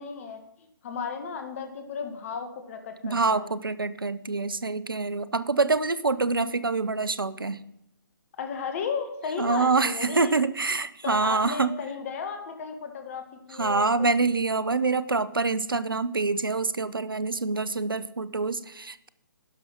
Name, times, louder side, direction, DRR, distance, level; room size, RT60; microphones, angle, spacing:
voice 1, 0.0-3.5 8.4-10.3 11.0-14.1, left 6 dB, 40° left, 6 dB, 1.6 m, -35 dB
voice 2, 3.0-7.6 9.4-11.7 13.5-19.1, right 3 dB, 85° right, 17 dB, 0.6 m, -26 dB
11.5 x 5.6 x 5.8 m, 0.80 s
figure-of-eight pair, 140°, 11 cm